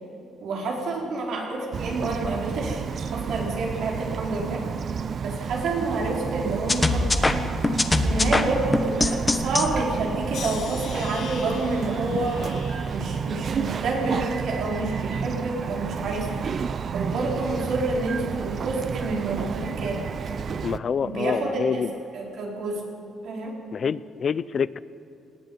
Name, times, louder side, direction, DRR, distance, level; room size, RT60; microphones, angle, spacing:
voice 1, 0.4-4.6 5.2-7.5 7.9-12.4 12.9-16.4 16.9-20.5 21.0-21.8 22.1-22.8 23.2-23.6, right 2 dB, 75° right, -1 dB, 4.8 m, -28 dB
Bird vocalization bird call bird song, 1.7-20.8, right 6 dB, 50° right, 0.6 m, -31 dB
sound 1, 6.7-9.7, left 2 dB, 20° left, 1.4 m, -22 dB
sound 2, 10.3-15.5 15.9-16.6 17.3-17.6, left 6 dB, 75° left, 2.8 m, -43 dB
voice 2, 20.6-21.9 23.7-24.8, left 6 dB, 50° left, 17 dB, 0.6 m, -26 dB
19.0 x 14.5 x 9.6 m, 3.0 s
cardioid pair, 90°, 0 cm